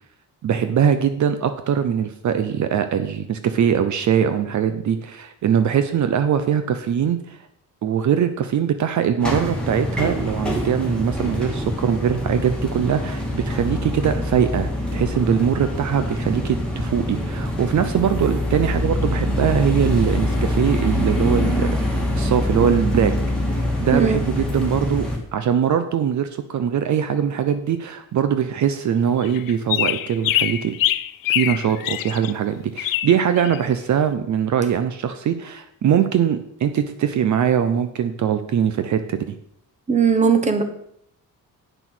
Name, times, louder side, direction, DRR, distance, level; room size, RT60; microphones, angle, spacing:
voice 1, 0.4-7.4 7.8-23.1 23.5-30.8 31.3-39.4, right 8 dB, 55° right, 10 dB, 0.7 m, -22 dB
sound 1, 9.2-25.2, left 1 dB, 5° left, 2.2 m, -24 dB
sound 2, 29.2-32.3 32.8-33.7, left 14 dB, 70° left, 0.6 m, -24 dB
voice 2, 39.9-40.6, right 5 dB, 20° right, 8 dB, 1.1 m, -18 dB
9.2 x 6.1 x 6.1 m, 0.72 s
cardioid pair, 135°, 35 cm